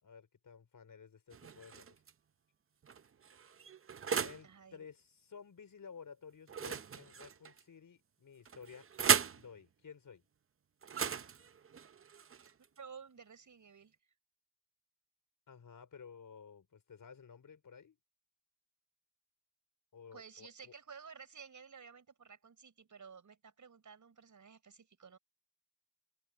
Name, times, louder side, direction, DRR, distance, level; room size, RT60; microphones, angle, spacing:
voice 1, 0.0-2.0 4.2-8.9 9.4-10.2 15.5-18.0 19.9-20.7, left 6 dB, 70° left, 4.8 m, -54 dB
sound 1, 1.3-2.1 2.8-4.5 6.5-7.6 8.5-9.5 10.8-12.8, right 7 dB, 40° right, 0.6 m, -36 dB
voice 2, 4.4-4.8 12.8-14.0 20.1-25.2, right 6 dB, 60° right, 6.0 m, -54 dB
wide cardioid pair, 145°, 34 cm